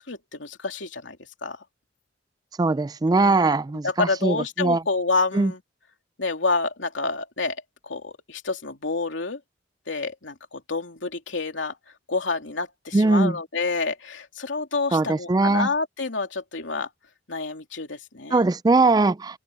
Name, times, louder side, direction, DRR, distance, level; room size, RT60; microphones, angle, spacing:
voice 1, 0.0-1.6 3.2-3.4 3.8-5.6 6.2-7.6 7.8-9.4 9.9-11.8 12.1-16.9 17.3-18.4, left 3 dB, 85° left, 2.8 m, -28 dB
voice 2, 2.6-4.8 5.3-5.5 12.9-13.4 14.9-15.7 18.3-19.4, right 3 dB, 20° right, 0.3 m, -20 dB
head